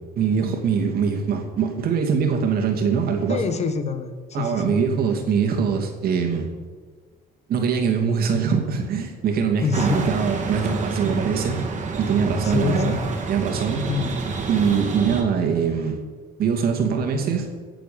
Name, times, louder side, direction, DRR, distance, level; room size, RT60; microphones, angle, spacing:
voice 1, 0.2-3.4 4.3-6.5 7.5-11.6 12.0-13.0 13.3-13.9 14.5-16.0 16.4-17.6, right 6 dB, 65° right, 4 dB, 2.5 m, -22 dB
voice 2, 3.3-4.8 9.6-10.1 12.4-13.1 13.9-14.2, left 6 dB, 40° left, 10 dB, 1.3 m, -26 dB
sound 1, 9.7-15.2, right 4 dB, 45° right, 2.6 m, -29 dB
16.5 x 7.8 x 7.0 m, 1.5 s
cardioid pair, 110°, 17 cm